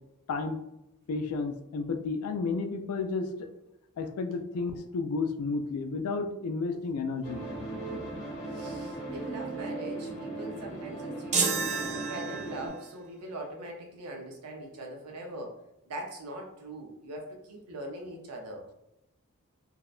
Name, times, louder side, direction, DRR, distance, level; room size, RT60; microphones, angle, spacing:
voice 1, 0.3-0.6 1.1-3.5 4.0-7.5, left 4 dB, 70° left, 8 dB, 0.3 m, -32 dB
sound 1, 7.2-12.7, right 2 dB, 30° left, 0.8 m, -38 dB
voice 2, 8.5-11.5 11.9-15.6 15.9-18.7, right 1 dB, 85° right, 1 dB, 0.6 m, -41 dB
sound 2, 11.3-12.8, right 5 dB, 30° right, 0.3 m, -30 dB
2.7 x 2.1 x 2.3 m, 0.86 s
head